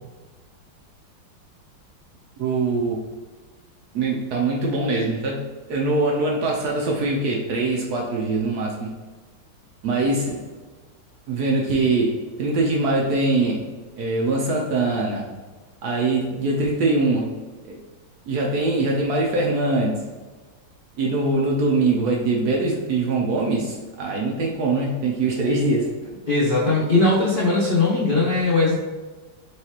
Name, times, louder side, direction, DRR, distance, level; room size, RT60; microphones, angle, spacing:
voice 1, 2.4-3.0 3.9-8.9 9.8-10.4 11.3-13.7 14.0-15.3 15.8-17.3 17.6-17.8 18.3-20.1 21.0-26.0, right 2 dB, 70° right, -1 dB, 0.9 m, -23 dB
voice 2, 26.3-28.8, left 2 dB, 55° left, -8 dB, 0.5 m, -19 dB
4.8 x 3.2 x 2.9 m, 1.3 s
omnidirectional pair, 2.3 m